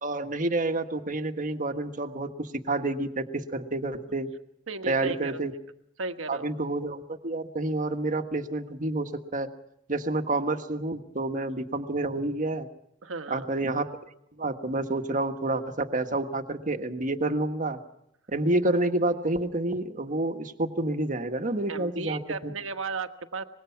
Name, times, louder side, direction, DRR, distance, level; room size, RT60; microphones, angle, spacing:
voice 1, 0.0-4.3 4.9-5.5 6.3-9.5 9.9-12.7 13.3-13.9 14.4-17.8 18.3-22.5, right 2 dB, 40° right, 7 dB, 1.6 m, -29 dB
voice 2, 4.7-5.4 6.0-6.5 13.0-13.5 21.7-23.4, right 3 dB, 80° right, 8 dB, 1.4 m, -35 dB
24.5 x 21.0 x 5.9 m, 0.78 s
head